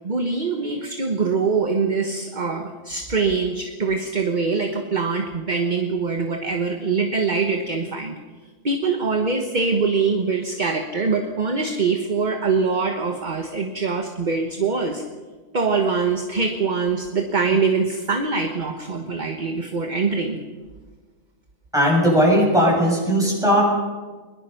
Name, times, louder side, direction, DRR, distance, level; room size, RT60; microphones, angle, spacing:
voice 1, 0.0-8.1 8.6-15.0 15.5-20.4, right 4 dB, 35° right, 5 dB, 1.4 m, -23 dB
voice 2, 21.7-23.6, equal, ahead, -4 dB, 8.0 m, -17 dB
22.0 x 21.5 x 5.8 m, 1.4 s
omnidirectional pair, 1.4 m